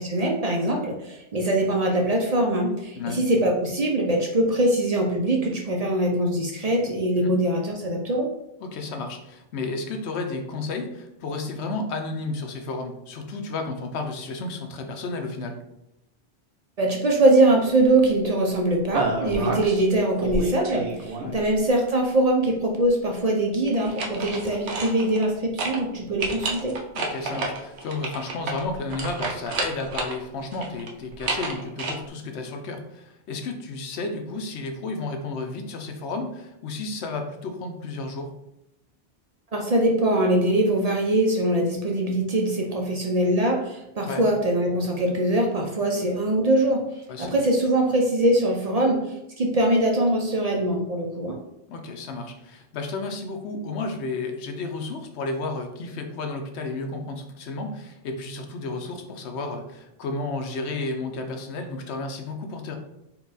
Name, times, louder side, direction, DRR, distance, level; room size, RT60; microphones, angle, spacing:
voice 1, 0.0-8.3 16.8-26.8 39.5-51.4, right 1 dB, 45° right, 1 dB, 0.5 m, -22 dB
voice 2, 8.6-15.6 19.4-19.7 21.2-21.4 26.9-38.3 44.1-44.2 47.1-47.3 51.7-62.8, left 3 dB, 85° left, 5 dB, 0.9 m, -32 dB
sound 1, 18.9-19.8 20.2-21.5 23.7-25.3 25.6-25.8 26.2-30.2 30.5-31.9, right 3 dB, 80° right, 1.0 m, -30 dB
4.3 x 2.3 x 3.9 m, 0.85 s
omnidirectional pair, 1.1 m